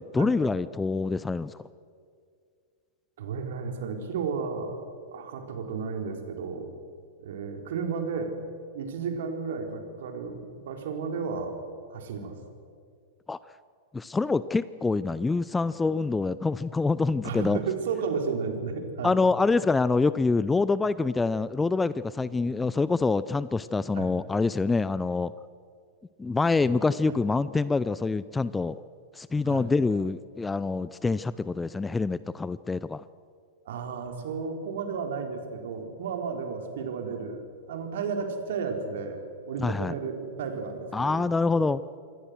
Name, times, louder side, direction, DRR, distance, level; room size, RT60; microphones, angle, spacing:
voice 1, 0.0-1.6 13.3-13.4 13.9-17.6 19.0-25.3 26.2-28.8 29.1-33.0 39.6-39.9 40.9-41.8, left 3 dB, 10° left, 17 dB, 0.6 m, -26 dB
voice 2, 3.2-6.7 7.2-8.4 8.7-11.6 11.9-12.4 17.2-19.2 23.9-24.1 29.4-29.7 33.7-39.2 39.5-41.7, right 5 dB, 60° right, 4 dB, 3.9 m, -33 dB
28.0 x 23.0 x 6.4 m, 2.2 s
figure-of-eight pair, 95°, 0 cm